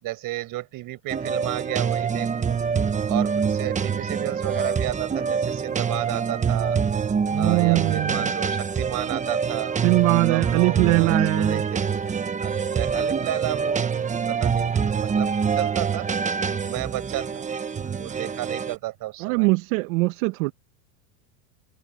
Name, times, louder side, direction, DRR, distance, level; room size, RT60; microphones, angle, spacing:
voice 1, 0.0-2.6 3.1-6.8 7.4-9.7 10.3-12.0 12.4-16.1 16.6-17.5 17.8-19.5, right 17 dB, 45° right, 5.6 m, -32 dB
sound 1, 1.1-18.8, right 6 dB, 15° right, 1.3 m, -25 dB
voice 2, 7.3-8.3 9.8-11.6 19.2-20.5, right 25 dB, 60° right, 1.7 m, -21 dB
supercardioid pair, 125°, 47 cm